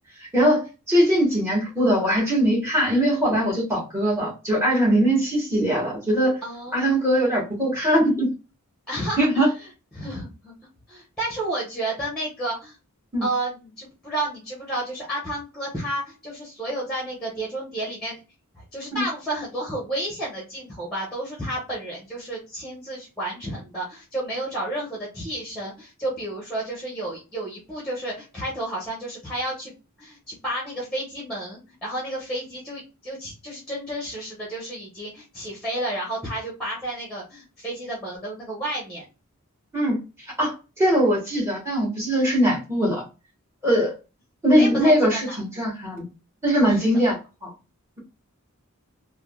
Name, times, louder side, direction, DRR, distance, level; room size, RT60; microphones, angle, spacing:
voice 1, 0.9-6.4 6.7-8.3 9.2-9.5 13.1-13.3 18.9-19.0 39.7-40.0 40.4-43.0 43.6-43.9 44.4-46.0 46.4-47.5, equal, 10° right, -4 dB, 1.3 m, -21 dB
voice 2, 6.4-7.1 8.9-9.4 9.9-10.5 10.9-12.7 13.2-18.2 18.5-39.0 44.5-45.6 46.7-46.8, right 1 dB, 5° left, -4 dB, 0.9 m, -31 dB
3.5 x 2.1 x 2.3 m, 0.30 s
head